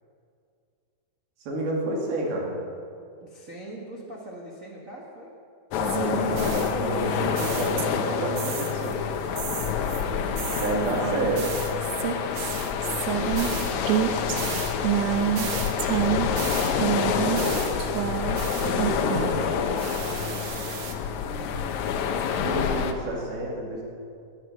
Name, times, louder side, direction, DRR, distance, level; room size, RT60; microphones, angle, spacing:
voice 1, 1.5-2.6 6.3-9.0 10.6-11.5 16.8-17.8 18.6-19.4 22.3-23.8, right 1 dB, 70° right, -1 dB, 4.1 m, -30 dB
voice 2, 3.2-5.4 9.7-11.2 13.0-15.5 17.0-18.6 19.4-20.4 21.1-22.1, right 1 dB, 55° right, -4 dB, 0.9 m, -42 dB
sound 1, 5.7-22.9, left 7 dB, 80° left, 1.7 m, -27 dB
sound 2, 5.8-8.1 8.4-8.9 9.4-19.5 19.8-20.9, right 10 dB, 90° right, 3.1 m, -30 dB
18.0 x 11.0 x 6.5 m, 2.4 s
omnidirectional pair, 4.5 m